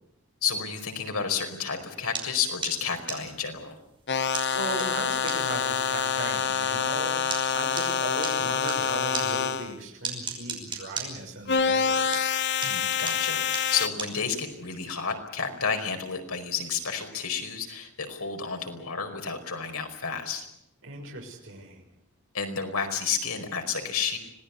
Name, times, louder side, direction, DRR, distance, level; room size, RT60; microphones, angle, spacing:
voice 1, 0.4-3.7 12.6-20.5 22.3-24.2, left 6 dB, 80° left, 4 dB, 4.9 m, -31 dB
sound 1, 2.1-8.8 9.1-11.9 12.1-14.7, right 5 dB, 25° right, 5.7 m, -35 dB
sound 2, 4.1-9.7 11.5-13.9, left 6 dB, 55° left, 1.1 m, -26 dB
voice 2, 4.5-7.1 7.5-12.1 20.8-21.9, right 2 dB, 60° right, 0 dB, 6.2 m, -37 dB
26.0 x 18.5 x 8.4 m, 0.79 s
head